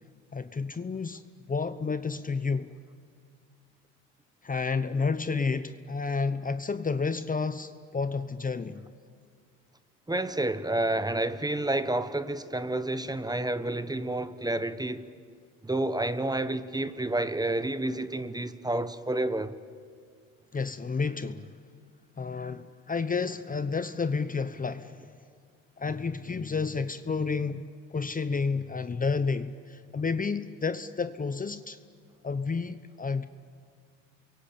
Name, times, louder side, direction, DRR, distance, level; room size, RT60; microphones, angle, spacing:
voice 1, 0.3-1.2 1.5-2.7 4.4-8.9 20.5-21.5 22.2-25.0 25.8-27.6 27.9-31.8 32.2-33.3, left 4 dB, 25° left, 0.9 m, -30 dB
voice 2, 10.1-15.1 15.6-19.5, right 2 dB, 10° right, 1.3 m, -29 dB
28.5 x 23.0 x 8.7 m
supercardioid pair, 75°, 33 cm